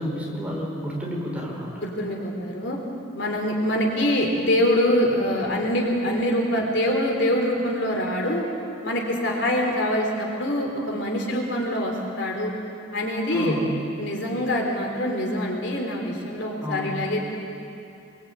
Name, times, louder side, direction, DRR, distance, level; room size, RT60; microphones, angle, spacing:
voice 1, 0.0-1.8 13.3-13.7 16.6-17.0, equal, 5° right, -4 dB, 5.4 m, -30 dB
voice 2, 1.8-2.8 3.1-8.4 8.8-12.5 12.9-13.6 14.0-17.2, left 1 dB, 60° left, 0 dB, 4.1 m, -24 dB
25.5 x 23.0 x 9.1 m, 2.7 s
head